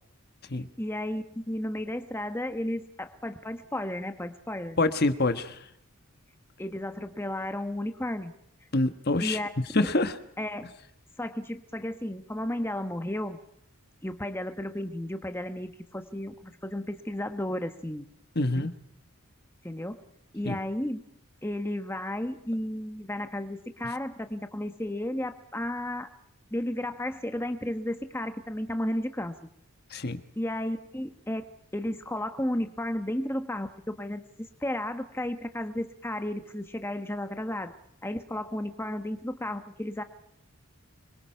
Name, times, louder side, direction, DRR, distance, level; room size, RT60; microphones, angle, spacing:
voice 1, 0.5-4.8 6.6-8.3 9.2-9.5 10.4-10.7 11.2-13.4 14.0-18.1 18.5-18.7 19.6-20.0 20.3-21.0 21.4-26.1 26.5-29.3 30.4-37.7 38.0-40.0, left 1 dB, 10° left, 8 dB, 1.1 m, -33 dB
voice 2, 4.8-5.6 8.7-9.4 9.7-10.1 18.3-18.7 20.4-20.6 29.9-30.2, left 2 dB, 45° left, 10 dB, 1.3 m, -26 dB
25.5 x 22.5 x 5.7 m, 0.77 s
head